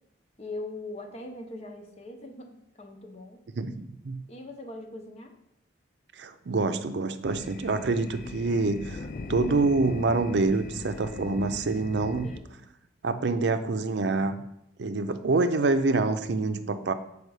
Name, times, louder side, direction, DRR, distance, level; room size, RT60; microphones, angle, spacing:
voice 1, 0.4-3.4 4.3-5.3 12.2-12.6, left 2 dB, 35° left, 4 dB, 0.9 m, -41 dB
voice 2, 3.6-4.2 6.2-9.0 9.3-12.3 13.0-14.4 14.8-16.9, right 3 dB, 70° right, 10 dB, 0.5 m, -26 dB
sound 1, 7.2-12.4, left 3 dB, 50° left, 0.5 m, -39 dB
6.6 x 4.8 x 4.8 m, 0.79 s
head